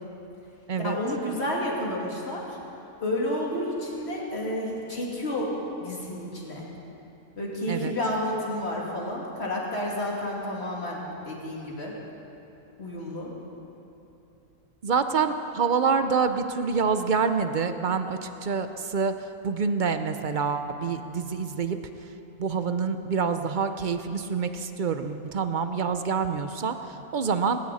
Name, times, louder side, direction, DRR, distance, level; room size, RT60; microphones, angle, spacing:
voice 1, 0.8-2.6 3.0-5.5 5.8-6.6 7.4-11.9 12.8-13.3, left 1 dB, 45° left, -4 dB, 3.0 m, -30 dB
voice 2, 14.8-19.1 19.4-21.8 22.4-27.6, right 5 dB, 50° right, 9 dB, 0.6 m, -26 dB
19.5 x 17.5 x 4.2 m, 2.9 s
omnidirectional pair, 1.5 m